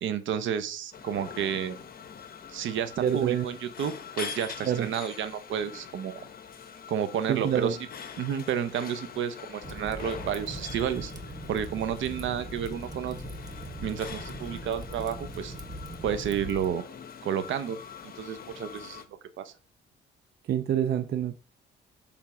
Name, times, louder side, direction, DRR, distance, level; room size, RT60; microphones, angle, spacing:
voice 1, 0.0-1.8 2.5-6.2 6.9-7.8 8.2-11.1 11.5-13.3 13.8-15.5 16.0-16.8 17.2-17.8 18.0-19.0 19.4-19.5, right 8 dB, 75° right, 0.9 m, -31 dB
sound 1, 0.9-19.0, left 7 dB, 50° left, 0.9 m, -44 dB
voice 2, 3.0-3.5 4.7-4.9 7.3-7.7 20.5-21.4, right 9 dB, 55° right, 0.5 m, -26 dB
Fire, 9.6-16.7, right 1 dB, 20° right, 1.2 m, -40 dB
7.0 x 3.6 x 5.7 m
cardioid pair, 90°, 20 cm